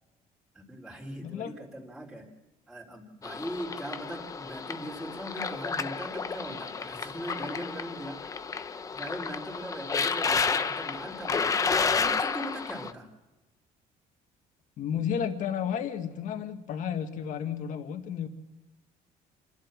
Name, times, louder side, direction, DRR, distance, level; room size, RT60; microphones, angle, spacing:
voice 1, 0.5-2.3 2.7-8.4 8.9-11.6 12.0-13.1, equal, ahead, -4 dB, 3.8 m, -40 dB
voice 2, 1.2-1.6 14.8-18.3, left 8 dB, 55° left, 7 dB, 2.0 m, -32 dB
sound 1, 3.2-12.9, left 5 dB, 20° left, 0.8 m, -31 dB
28.5 x 12.0 x 7.6 m, 1.1 s
cardioid pair, 160°, 16 cm